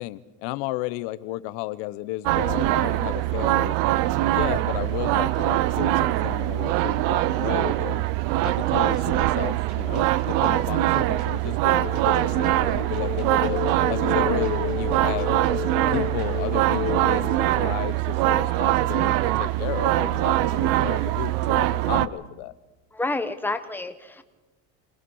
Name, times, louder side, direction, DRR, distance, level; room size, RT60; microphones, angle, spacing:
voice 1, 0.0-3.7 4.3-8.0 8.4-13.6 13.9-15.3 15.9-22.5, left 17 dB, 75° left, 14 dB, 1.0 m, -33 dB
sound 1, 2.3-22.1, right 15 dB, 70° right, 0.8 m, -23 dB
sound 2, 8.4-16.4, right 4 dB, 90° right, 6.1 m, -53 dB
sound 3, 11.8-17.4, left 12 dB, 55° left, 1.4 m, -33 dB
voice 2, 22.9-24.2, left 2 dB, 5° left, 8 dB, 1.1 m, -29 dB
26.0 x 19.0 x 5.6 m, 1.1 s
cardioid pair, 135°, 34 cm